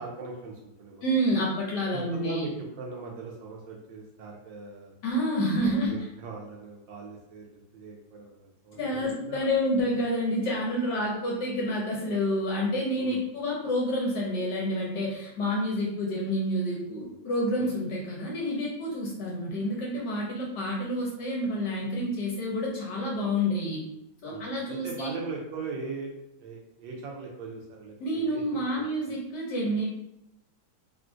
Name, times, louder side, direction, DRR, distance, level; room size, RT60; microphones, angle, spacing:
voice 1, 0.0-1.0 1.9-4.9 5.6-9.4 13.0-13.2 17.6-17.7 24.3-26.1 26.4-29.1, right 4 dB, 75° right, 0 dB, 1.2 m, -40 dB
voice 2, 1.0-2.5 5.0-6.0 8.8-23.8 24.2-25.1 28.0-29.9, equal, 65° left, -3 dB, 1.1 m, -28 dB
3.7 x 2.5 x 2.4 m, 0.85 s
omnidirectional pair, 2.3 m